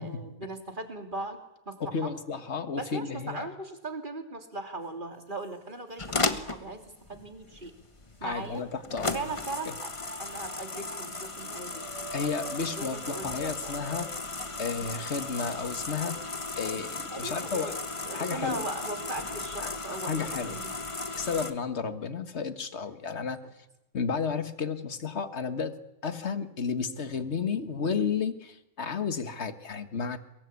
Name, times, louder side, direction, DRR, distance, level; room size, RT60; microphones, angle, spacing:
voice 1, 0.0-1.4 1.7-2.1 2.7-6.8 7.1-7.7 8.2-8.6 9.1-9.9 10.2-11.8 12.7-13.9 17.1-17.7 18.1-20.7, right 2 dB, 35° right, 5 dB, 3.1 m, -38 dB
voice 2, 1.8-3.5 8.2-9.3 9.7-9.8 12.1-14.1 14.6-17.8 18.1-18.6 19.6-19.8 20.1-20.6 21.1-23.4 23.9-30.2, left 5 dB, 55° left, 10 dB, 1.8 m, -32 dB
sound 1, 4.8-4.9 5.4-6.3 6.9-7.0 8.1-9.3 9.8-14.8, right 3 dB, 80° left, 6.3 m, -47 dB
sound 2, 6.0-21.5, left 3 dB, 25° left, 1.4 m, -36 dB
23.0 x 22.5 x 8.4 m, 0.89 s
omnidirectional pair, 1.4 m